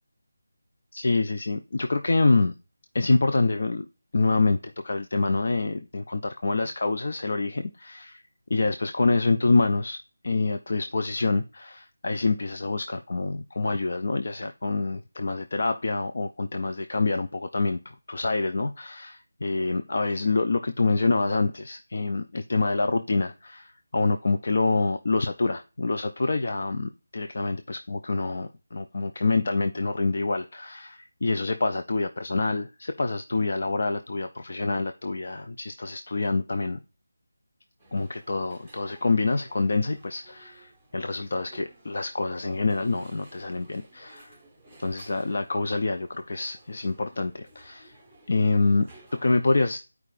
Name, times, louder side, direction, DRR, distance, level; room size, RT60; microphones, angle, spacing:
voice 1, 0.9-2.5 2.9-3.9 4.1-4.6 4.8-8.2 8.5-10.0 10.2-36.8 37.9-44.4 44.8-47.9 48.3-48.9 49.2-49.8, left 3 dB, 40° left, 7 dB, 0.4 m, -26 dB
sound 1, 37.8-49.6, right 2 dB, 5° left, 1.2 m, -55 dB
11.0 x 4.7 x 2.5 m, 0.32 s
figure-of-eight pair, 180°, 0 cm